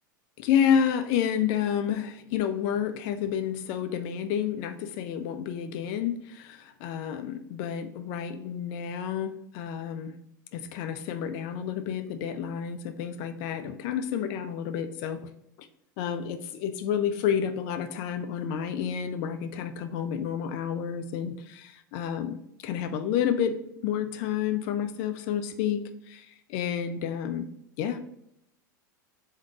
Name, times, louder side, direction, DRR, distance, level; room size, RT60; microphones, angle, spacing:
voice 1, 0.4-10.1 10.5-15.3 16.0-27.5 27.8-28.0, left 8 dB, 50° left, 9 dB, 0.4 m, -30 dB
3.6 x 2.7 x 4.7 m, 0.77 s
hypercardioid pair, 90°, 11 cm